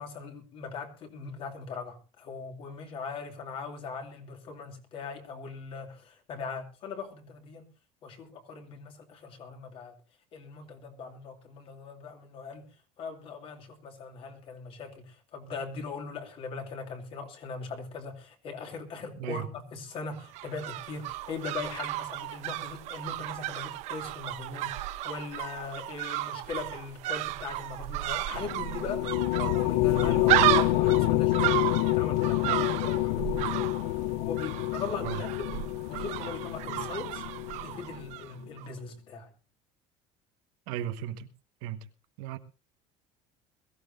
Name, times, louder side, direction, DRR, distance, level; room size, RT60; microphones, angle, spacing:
voice 1, 0.0-7.6 8.0-9.9 10.3-12.7 13.0-33.7 34.2-35.5 35.9-37.2 37.6-39.3, left 4 dB, 45° left, 2.8 m, -40 dB
sound 1, 20.1-38.3 38.6-38.7, right 16 dB, 60° right, 0.9 m, -33 dB
sound 2, 28.3-38.1, left 18 dB, 85° left, 0.6 m, -28 dB
voice 2, 40.7-41.3 41.6-41.8 42.2-42.4, right 10 dB, 75° right, 1.4 m, -35 dB
22.0 x 14.5 x 2.7 m
cardioid pair, 145°, 13 cm